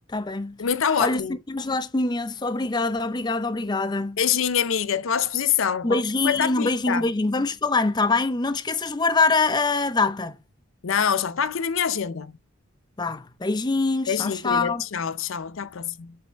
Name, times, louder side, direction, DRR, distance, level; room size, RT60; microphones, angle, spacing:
voice 1, 0.1-0.6 1.0-1.2 1.5-4.2 5.8-10.4 13.0-14.8, left 3 dB, 20° left, 0.5 m, -24 dB
voice 2, 0.6-1.4 4.2-7.1 10.8-12.3 14.1-16.2, left 7 dB, 75° left, 0.5 m, -25 dB
7.7 x 4.1 x 5.2 m
head